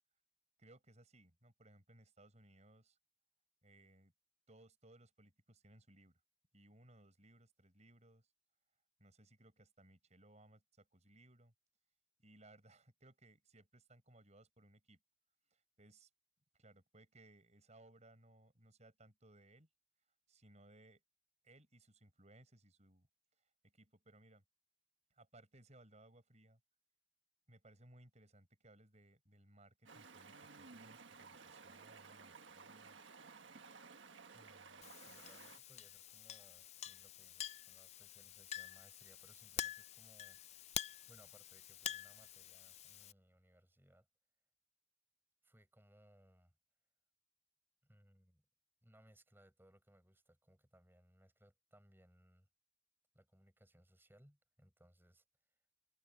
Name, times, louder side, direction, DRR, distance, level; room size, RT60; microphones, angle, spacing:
voice 1, 0.6-3.0 3.6-4.1 4.5-6.2 6.5-8.3 9.0-11.5 12.2-15.0 15.5-16.1 16.5-19.7 20.3-21.0 21.4-23.1 23.6-24.4 25.1-26.6 27.5-33.0, right 1 dB, 35° right, 6.6 m, -64 dB
Stream, 29.8-35.6, right 4 dB, 75° right, 1.5 m, -57 dB
voice 2, 34.3-40.7 41.1-44.1 45.4-46.5 47.8-48.5 48.8-52.5 53.1-55.2, right 1 dB, 10° right, 5.3 m, -67 dB
Chink clink, 34.8-43.1, left 11 dB, 35° left, 0.4 m, -48 dB
head